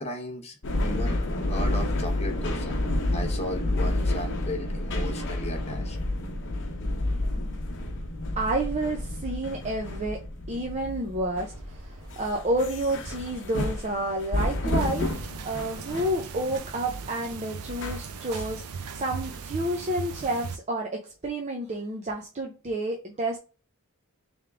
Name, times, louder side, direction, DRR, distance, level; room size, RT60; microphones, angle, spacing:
voice 1, 0.0-2.8 3.1-6.0 7.3-7.6, left 1 dB, 30° left, 0.7 m, -36 dB
sound 1, 0.6-16.3 16.8-17.0 17.7-18.5 19.3-19.4, left 1 dB, 55° left, 0.9 m, -30 dB
voice 2, 8.4-10.2 10.5-11.9 12.2-23.4, right 1 dB, 30° right, 0.5 m, -30 dB
Accelerating revving vroom, 11.5-16.6, right 1 dB, 65° right, 1.0 m, -47 dB
sound 2, 14.8-20.6, right 5 dB, 80° right, 0.5 m, -38 dB
3.5 x 3.5 x 3.4 m
head